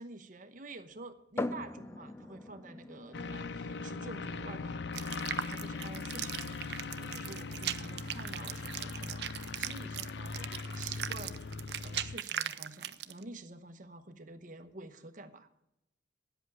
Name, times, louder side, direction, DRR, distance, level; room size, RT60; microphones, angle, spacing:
voice 1, 0.0-4.8 5.1-11.4 11.8-15.5, right 2 dB, 50° right, 8 dB, 1.1 m, -49 dB
sound 1, 1.4-14.9, left 2 dB, 15° left, 0.5 m, -47 dB
sound 2, 3.1-12.2, left 4 dB, 75° left, 0.5 m, -40 dB
sound 3, 4.9-13.2, right 10 dB, 65° right, 0.6 m, -39 dB
10.0 x 8.1 x 9.4 m, 0.86 s
head